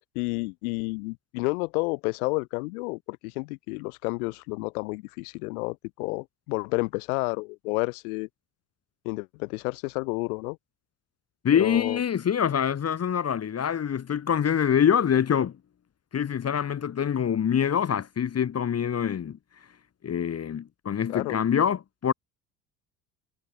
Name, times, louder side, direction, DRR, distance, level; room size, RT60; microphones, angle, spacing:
voice 1, 0.2-8.3 9.1-10.6 11.5-12.0 21.1-21.4, left 27 dB, 70° left, 1.9 m, -30 dB
voice 2, 11.4-15.5 16.1-19.4 20.0-22.1, left 8 dB, 35° left, 1.6 m, -25 dB
hypercardioid pair, 65°, 45 cm